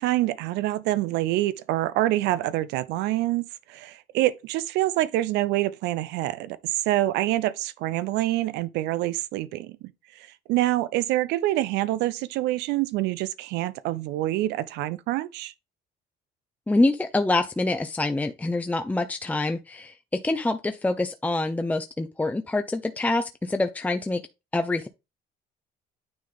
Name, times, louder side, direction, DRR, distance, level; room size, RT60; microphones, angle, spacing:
voice 1, 0.0-9.8 10.1-15.5, right 15 dB, 90° right, 0.5 m, -26 dB
voice 2, 16.7-24.2 24.5-24.9, left 2 dB, 10° left, 0.6 m, -26 dB
9.5 x 3.5 x 3.9 m
cardioid pair, 110°, 17 cm